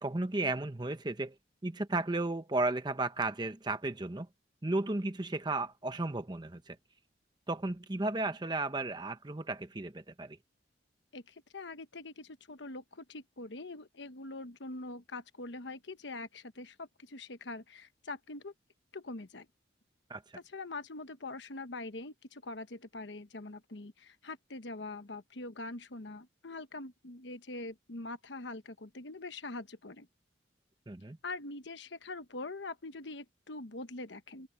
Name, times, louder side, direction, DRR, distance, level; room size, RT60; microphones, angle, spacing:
voice 1, 0.0-1.4 1.6-4.3 4.6-6.8 7.5-10.4 20.1-20.2 30.9-31.2, right 2 dB, 25° right, 0.8 m, -34 dB
voice 2, 11.1-18.5 18.9-19.5 20.3-30.1 31.2-34.5, left 2 dB, 75° left, 1.1 m, -43 dB
open air
head